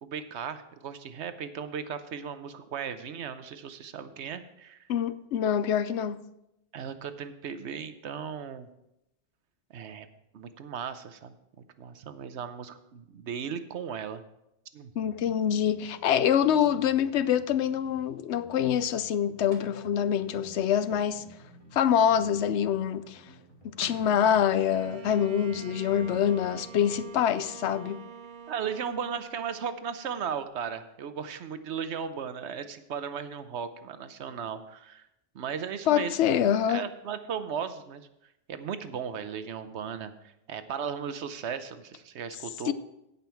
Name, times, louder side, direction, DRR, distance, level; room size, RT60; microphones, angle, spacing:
voice 1, 0.0-4.8 6.7-8.7 9.7-10.1 10.3-11.3 11.8-14.2 14.7-14.9 28.5-35.1 35.3-38.1 38.5-40.1 40.5-42.7, right 7 dB, 85° right, 1.1 m, -36 dB
voice 2, 4.9-6.2 15.0-21.2 21.7-23.2 23.8-28.0 35.9-36.8 42.7-42.8, left 9 dB, 90° left, 0.9 m, -25 dB
sound 1, 14.9-27.0, right 2 dB, 30° left, 2.4 m, -53 dB
sound 2, 19.5-19.8 23.5-23.6 23.8-24.2, right 1 dB, 35° right, 1.5 m, -46 dB
Bowed string instrument, 24.4-30.2, right 7 dB, 55° right, 0.8 m, -47 dB
16.5 x 5.6 x 4.5 m
omnidirectional pair, 1.1 m